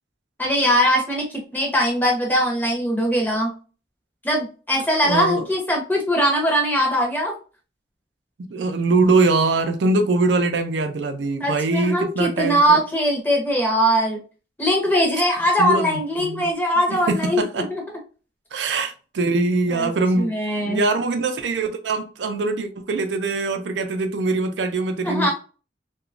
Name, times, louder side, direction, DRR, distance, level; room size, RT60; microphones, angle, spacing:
voice 1, 0.4-3.5 4.2-7.3 11.4-14.2 14.6-17.4 17.7-17.8 19.7-19.9 20.2-20.8 25.0-25.3, equal, 10° left, 0.7 m, -21 dB
voice 2, 5.0-5.5 8.5-12.8 15.6-16.5 16.9-17.7 18.5-25.3, right 3 dB, 85° right, 0.4 m, -22 dB
2.9 x 2.2 x 2.4 m
head